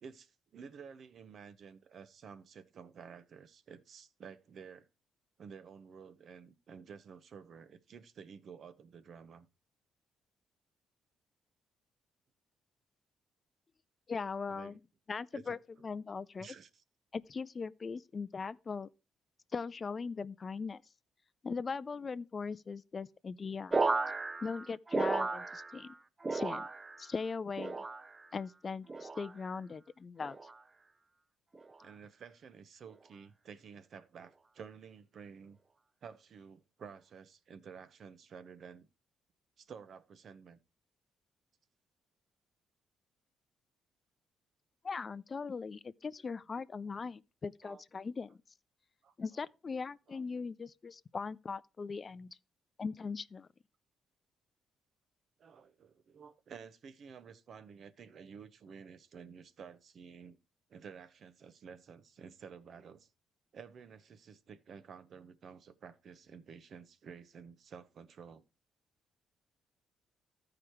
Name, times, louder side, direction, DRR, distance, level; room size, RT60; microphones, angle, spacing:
voice 1, 0.0-4.9 5.4-9.5 14.5-14.8 15.3-15.6 16.4-16.8 31.8-35.6 36.0-38.9 39.6-40.6 47.6-47.8 49.0-49.5 50.1-50.2 55.4-60.4 60.7-63.1 63.5-68.4, right 6 dB, 55° right, 0.8 m, -52 dB
voice 2, 14.1-14.8 15.1-16.5 17.1-18.9 19.5-20.8 21.4-23.8 24.4-26.0 26.3-26.7 27.0-27.8 28.3-30.4 44.8-48.4 49.2-52.3 52.8-53.5, left 5 dB, 35° left, 0.4 m, -40 dB
sound 1, 23.7-25.9 26.2-27.1 27.6-28.3 28.9-29.3 30.2-30.6 31.5-31.8, right 3 dB, 25° right, 0.5 m, -35 dB
13.5 x 4.9 x 4.4 m
cardioid pair, 90°, 0 cm